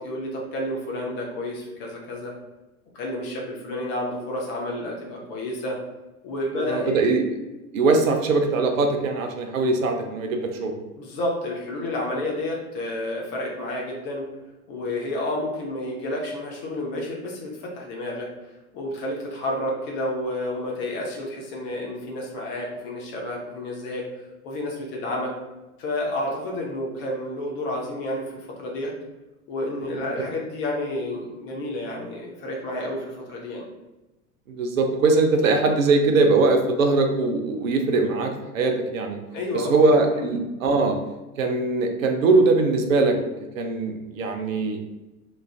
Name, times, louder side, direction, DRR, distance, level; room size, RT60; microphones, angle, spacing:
voice 1, 0.0-2.3 2.9-5.8 6.2-6.9 11.0-14.3 14.7-18.3 18.7-24.0 24.4-25.3 25.8-28.9 29.5-33.6 39.3-39.7 40.1-40.2, left 1 dB, 25° left, -1 dB, 0.5 m, -30 dB
voice 2, 6.6-7.2 7.7-10.7 29.9-30.0 34.6-39.2 39.5-41.0 41.4-43.2 43.5-44.8, right 3 dB, 65° right, 4 dB, 0.5 m, -21 dB
3.1 x 2.4 x 2.2 m, 1.1 s
figure-of-eight pair, 85°, 44 cm